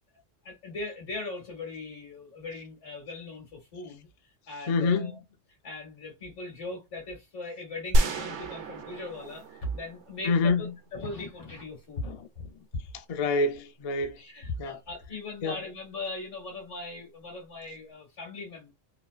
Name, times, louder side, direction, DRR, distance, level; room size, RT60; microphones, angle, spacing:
voice 1, 0.4-4.1 4.5-5.2 5.6-12.5 14.2-18.7, left 2 dB, 80° left, 2.4 m, -39 dB
voice 2, 4.7-5.1 10.3-10.7 12.0-12.2 13.1-14.2 14.6-14.8 15.4-15.6, left 3 dB, 50° left, 0.5 m, -26 dB
sound 1, 7.9-10.8, right 1 dB, 80° right, 1.0 m, -29 dB
4.2 x 2.4 x 2.4 m
omnidirectional pair, 1.2 m